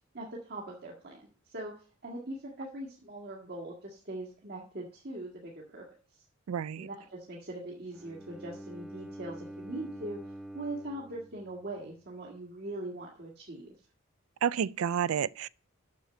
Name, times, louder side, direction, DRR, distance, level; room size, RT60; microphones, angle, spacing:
voice 1, 0.1-5.8 6.8-13.7, right 1 dB, 50° right, 1.9 m, -41 dB
voice 2, 6.5-6.9 14.4-15.5, right 8 dB, 90° right, 0.4 m, -30 dB
Bowed string instrument, 7.9-12.0, right 1 dB, 5° right, 0.6 m, -46 dB
6.7 x 6.7 x 7.8 m
head